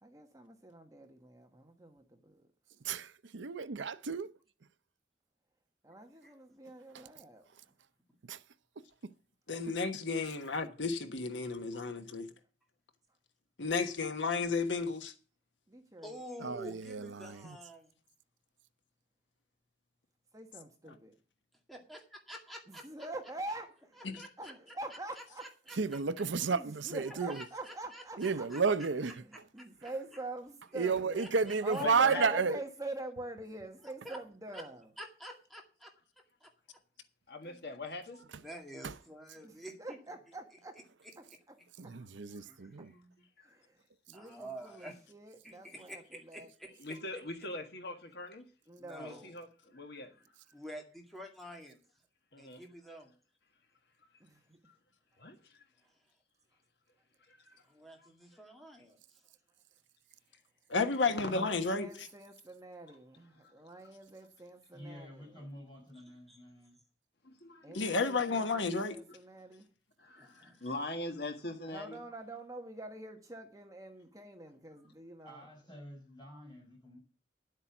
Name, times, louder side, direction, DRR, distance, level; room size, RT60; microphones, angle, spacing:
voice 1, 0.0-2.5 5.8-7.4 15.7-16.2 20.3-21.1 22.7-24.1 24.4-25.5 26.5-28.5 29.1-31.3 31.6-34.9 39.4-40.8 41.2-41.3 41.8-41.9 42.8-42.9 43.4-43.8 44.1-46.5 48.7-49.3 49.7-49.8 50.0-50.1 54.2-54.6 61.0-65.4 67.6-69.7 71.7-75.5, right 2 dB, 20° right, 1.3 m, -45 dB
voice 2, 3.3-4.3 8.3-8.4 16.4-17.4 25.8-27.3 28.2-29.1 30.8-32.6 41.8-42.9, right 5 dB, 85° right, 0.7 m, -31 dB
voice 3, 9.5-12.3 13.6-15.1 60.7-61.9 67.7-69.0, left 4 dB, 85° left, 1.3 m, -32 dB
voice 4, 16.0-17.9 21.7-22.9 24.2-24.5 25.2-26.2 27.1-28.6 29.6-29.7 30.9-31.8 34.0-34.2 34.5-34.6 35.0-35.9 36.4-36.5 37.4-37.6 38.4-40.0 42.5-43.3 44.1-45.0 45.4-46.7 48.8-49.2 50.5-51.8 52.4-53.1 57.7-59.2 66.3-66.4 70.2-70.7, equal, ahead, 2.1 m, -49 dB
voice 5, 31.8-32.4 37.3-38.2 43.4-43.5 46.8-48.4 49.0-50.1 52.3-52.6 54.6-54.8 55.2-55.6 57.3-57.6 58.0-58.1 61.2-61.3 63.4-63.5 67.2-67.8 70.0-72.0, left 2 dB, 60° left, 1.5 m, -42 dB
voice 6, 64.7-66.8 75.2-77.0, equal, 25° left, 6.2 m, -50 dB
11.0 x 8.1 x 5.9 m
head